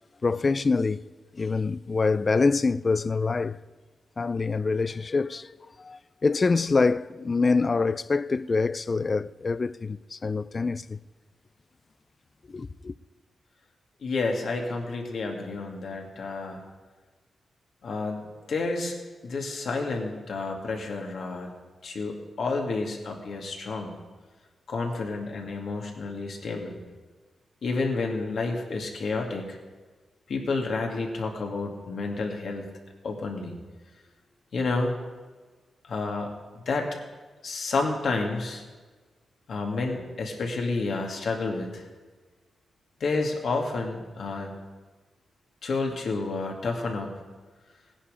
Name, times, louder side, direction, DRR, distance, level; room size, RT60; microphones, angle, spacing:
voice 1, 0.2-1.0 1.4-3.6 4.2-5.5 5.8-11.0 12.5-12.9, left 4 dB, 40° left, 0.4 m, -25 dB
voice 2, 14.0-16.6 17.8-18.9 19.2-21.5 21.8-23.9 24.7-26.8 27.6-29.6 30.3-32.7 33.0-33.5 34.5-34.9 35.9-36.9 37.4-38.6 39.5-41.8 43.0-44.5 45.6-47.1, left 3 dB, 70° left, 2.2 m, -30 dB
17.5 x 10.0 x 5.1 m
cardioid pair, 90°, 0 cm